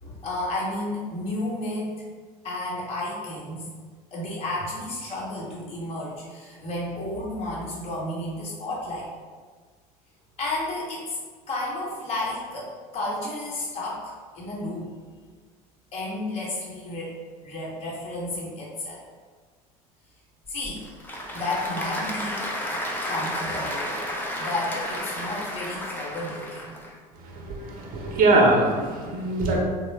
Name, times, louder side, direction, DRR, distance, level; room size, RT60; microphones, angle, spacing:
voice 1, 0.0-1.9 2.4-3.7 4.1-9.1 10.4-11.2 11.5-14.9 15.9-17.1 17.4-19.0 20.5-20.8 21.3-22.4 23.1-23.9 24.3-26.8, left 1 dB, 35° left, -5 dB, 0.9 m, -32 dB
Applause / Crowd, 20.5-26.9, equal, 10° left, 0.5 m, -32 dB
voice 2, 27.2-29.6, right 2 dB, 50° right, -1 dB, 0.8 m, -22 dB
3.0 x 2.1 x 3.2 m, 1.5 s
hypercardioid pair, 75°, 19 cm